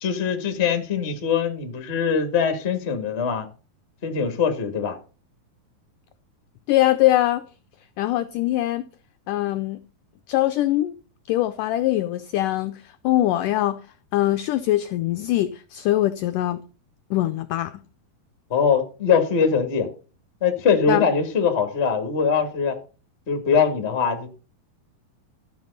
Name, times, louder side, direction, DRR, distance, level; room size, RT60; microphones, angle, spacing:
voice 1, 0.0-3.5 4.0-5.0 18.5-19.9 20.4-22.8 23.3-24.3, left 6 dB, 40° left, 0.9 m, -22 dB
voice 2, 6.7-7.4 8.0-8.8 9.3-9.8 10.3-11.0 11.3-13.8 14.1-16.6 17.1-17.8 20.9-21.0, left 15 dB, 85° left, 1.9 m, -22 dB
12.5 x 7.4 x 5.4 m
omnidirectional pair, 4.4 m